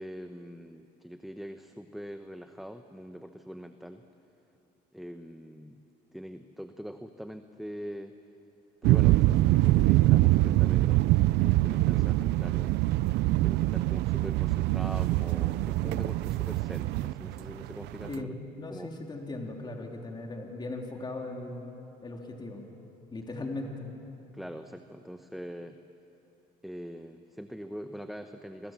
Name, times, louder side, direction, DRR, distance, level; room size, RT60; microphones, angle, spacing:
voice 1, 0.0-4.0 4.9-5.8 6.1-8.1 8.8-11.0 11.4-12.7 13.4-18.4 18.7-18.9 24.3-25.8 26.6-28.7, equal, ahead, 7 dB, 1.0 m, -43 dB
sound 1, 8.8-18.2, right 17 dB, 90° right, 0.5 m, -24 dB
voice 2, 18.1-21.7 22.0-22.7 23.1-23.9, left 2 dB, 25° left, 1 dB, 3.5 m, -38 dB
28.5 x 23.5 x 7.5 m, 2.9 s
cardioid pair, 110°, 17 cm